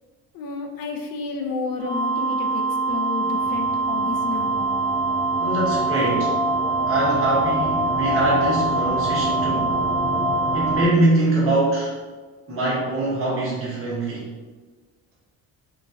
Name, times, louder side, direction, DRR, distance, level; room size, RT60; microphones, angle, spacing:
voice 1, 0.3-4.7, left 4 dB, 65° left, 3 dB, 0.5 m, -31 dB
sound 1, 1.8-10.8, right 3 dB, 85° right, 1.0 m, -24 dB
sound 2, 3.3-10.8, left 2 dB, 15° right, 0.9 m, -29 dB
voice 2, 5.4-6.4 6.9-9.8 10.5-12.0 12.5-14.2, right 2 dB, 35° right, -7 dB, 1.4 m, -23 dB
3.9 x 2.3 x 2.5 m, 1.4 s
cardioid pair, 125°, 38 cm